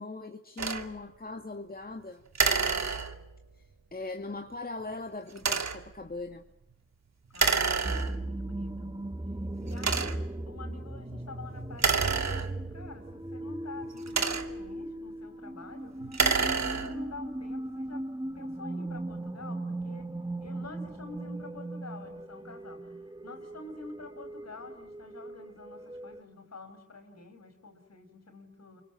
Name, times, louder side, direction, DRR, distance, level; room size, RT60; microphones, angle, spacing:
voice 1, 0.0-2.2 3.9-6.4, left 2 dB, 30° left, 5 dB, 2.1 m, -39 dB
sound 1, 0.6-0.9 2.3-3.4 5.3-5.9 7.3-8.4 9.0-9.1 9.8-10.4 11.7-12.9 13.8-14.7 16.0-17.1, right 5 dB, 65° right, 2.5 m, -28 dB
voice 2, 7.3-7.9 8.2-9.0 9.6-16.0 16.4-20.1 20.4-23.0 23.2-28.8, left 3 dB, 60° left, 8 dB, 5.8 m, -48 dB
sound 2, 7.8-26.2, right 1 dB, 15° right, 1.7 m, -38 dB
28.5 x 24.5 x 7.4 m, 0.75 s
cardioid pair, 70°, 29 cm